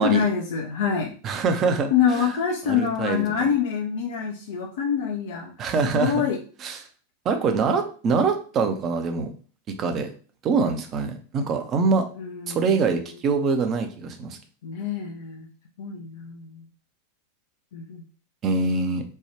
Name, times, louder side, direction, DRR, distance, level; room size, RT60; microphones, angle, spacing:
voice 1, 0.0-1.1 1.9-5.5 5.9-6.4 12.1-13.1 14.6-15.5 15.8-16.7 17.7-18.0, left 7 dB, 55° left, 1 dB, 0.5 m, -26 dB
voice 2, 1.2-2.3 2.7-3.2 5.6-6.3 6.6-6.8 7.2-9.3 9.7-10.1 10.4-12.1 12.5-14.4 18.4-19.0, right 4 dB, 30° right, 6 dB, 0.6 m, -24 dB
3.4 x 2.3 x 4.4 m, 0.41 s
figure-of-eight pair, 90°, 0 cm